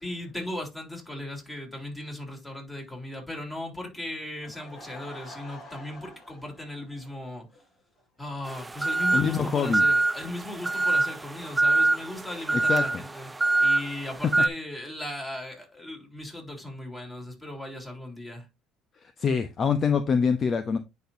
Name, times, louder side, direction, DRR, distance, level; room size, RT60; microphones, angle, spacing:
voice 1, 0.0-7.5 8.2-18.5, left 1 dB, 15° left, 3.3 m, -37 dB
Laughter / Crowd, 4.2-7.6 8.0-8.1 8.6-8.7 8.9-9.0, equal, 50° left, 4.0 m, -48 dB
sound 1, 8.5-14.5, right 2 dB, 15° right, 0.4 m, -25 dB
voice 2, 9.1-9.8 12.7-13.0 19.2-20.8, left 6 dB, 35° left, 0.7 m, -25 dB
10.0 x 4.3 x 2.6 m
cardioid pair, 105°, 0 cm